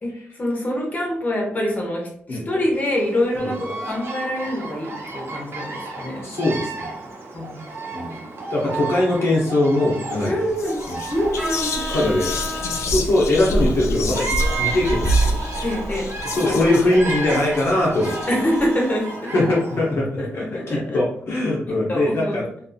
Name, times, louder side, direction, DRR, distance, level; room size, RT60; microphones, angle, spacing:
voice 1, 0.0-6.3 7.3-7.6 10.3-10.8 11.1-11.8 15.6-16.1 16.4-17.3 18.3-19.3 20.2-21.0 21.7-22.4, left 1 dB, 35° left, -2 dB, 0.9 m, -25 dB
Bird vocalization bird call bird song, 2.7-20.0, right 3 dB, 55° right, 0.7 m, -33 dB
voice 2, 6.2-6.9 7.9-8.2 8.5-10.4 10.9-11.0 11.9-12.3 12.6-15.4 16.2-18.2 19.3-22.4, left 1 dB, 60° left, -4 dB, 0.7 m, -21 dB
Whispering, 10.1-10.3 10.6-18.7, equal, 80° left, 0.4 m, -26 dB
Vehicle horn car horn honking, 11.4-12.9 14.4-15.9 18.0-19.2, right 1 dB, 10° right, 0.9 m, -34 dB
2.5 x 2.4 x 2.6 m, 0.63 s
wide cardioid pair, 105°, 5 cm